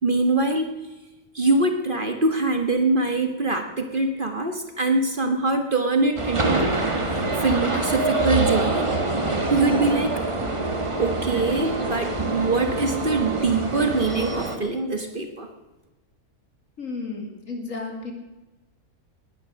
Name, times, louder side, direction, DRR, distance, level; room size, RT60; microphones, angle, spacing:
voice 1, 0.0-0.7 1.3-6.7 7.1-8.9 9.5-10.2 11.0-15.5, right 3 dB, 35° right, 5 dB, 1.5 m, -23 dB
sound 1, 5.1-5.2 6.0-13.4, right 4 dB, 80° right, 2.0 m, -39 dB
sound 2, 6.2-14.6, right 2 dB, 20° right, 1.6 m, -25 dB
voice 2, 16.8-18.1, left 3 dB, 60° left, 2 dB, 3.0 m, -33 dB
19.5 x 10.0 x 6.3 m, 1.1 s
omnidirectional pair, 1.6 m